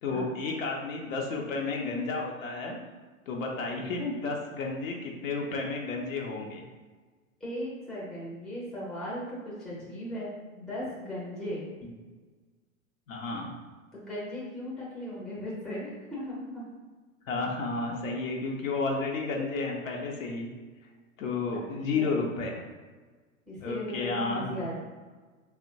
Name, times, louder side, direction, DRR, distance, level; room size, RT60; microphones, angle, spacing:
voice 1, 0.0-2.8 3.3-6.6 13.1-13.5 17.3-20.5 21.2-22.6 23.6-24.5, left 3 dB, 75° left, 0 dB, 0.6 m, -32 dB
voice 2, 7.4-11.6 13.9-16.6 21.5-22.2 23.5-24.7, left 1 dB, ahead, -7 dB, 0.4 m, -37 dB
2.8 x 2.1 x 2.6 m, 1.4 s
hypercardioid pair, 105°, 40 cm